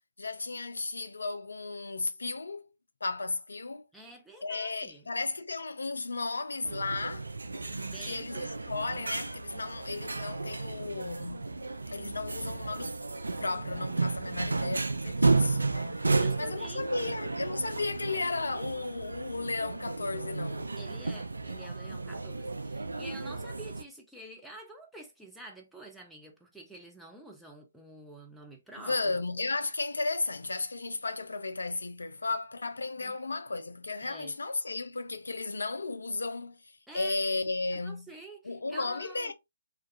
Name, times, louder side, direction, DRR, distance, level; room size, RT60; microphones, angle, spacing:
voice 1, 0.2-2.7 3.0-3.8 4.4-7.3 8.1-11.4 11.9-13.0 13.4-16.0 16.4-20.7 28.8-36.6 36.9-38.1 38.5-39.3, left 3 dB, 65° left, 0.3 m, -34 dB
voice 2, 3.9-5.1 7.8-8.5 16.1-17.2 20.8-29.2 33.0-33.2 34.0-34.3 36.9-37.2 37.7-39.3, right 2 dB, ahead, 0.4 m, -48 dB
sound 1, 6.6-23.8, right 3 dB, 70° right, 0.3 m, -33 dB
2.3 x 2.2 x 2.5 m
figure-of-eight pair, 135°, 0 cm